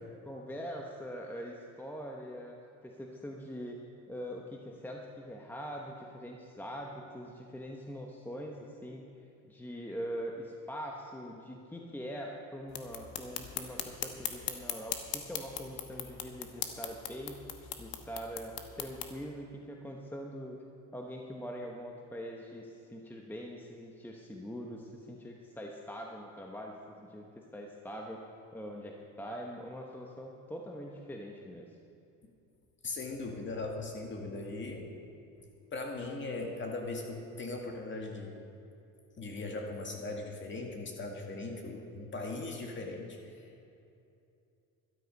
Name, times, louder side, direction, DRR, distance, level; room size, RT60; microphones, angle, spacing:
voice 1, 0.2-2.6 2.8-3.8 4.1-9.0 9.5-17.3 17.8-20.6 20.9-28.2 28.5-31.7, equal, 5° left, 0 dB, 1.1 m, -43 dB
sound 1, 12.7-19.1, left 10 dB, 85° left, 1.3 m, -40 dB
voice 2, 32.8-34.9 35.7-38.4 39.2-43.6, left 2 dB, 35° left, 2 dB, 2.1 m, -39 dB
12.5 x 12.5 x 5.4 m, 2.7 s
cardioid pair, 120°, 35 cm